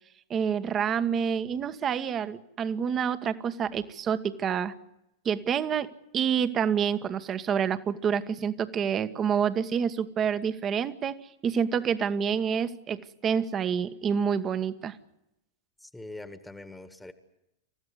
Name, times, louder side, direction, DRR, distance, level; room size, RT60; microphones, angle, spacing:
voice 1, 0.3-4.8 5.2-11.1 11.4-15.0, right 7 dB, 25° right, 12 dB, 1.4 m, -28 dB
voice 2, 15.8-17.1, left 2 dB, 5° left, 10 dB, 1.7 m, -43 dB
28.0 x 15.0 x 9.6 m, 0.86 s
figure-of-eight pair, 90°, 0 cm